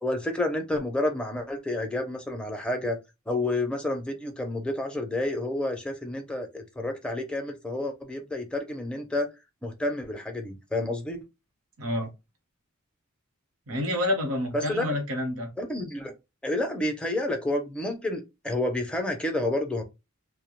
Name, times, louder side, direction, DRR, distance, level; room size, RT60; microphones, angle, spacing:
voice 1, 0.0-3.0 3.3-9.3 9.6-11.2 14.5-14.9 15.6-16.1 16.4-19.8, left 1 dB, 5° left, 0.5 m, -29 dB
voice 2, 11.8-12.1 13.7-15.5, left 1 dB, 75° right, 0.9 m, -28 dB
2.2 x 2.1 x 2.9 m
head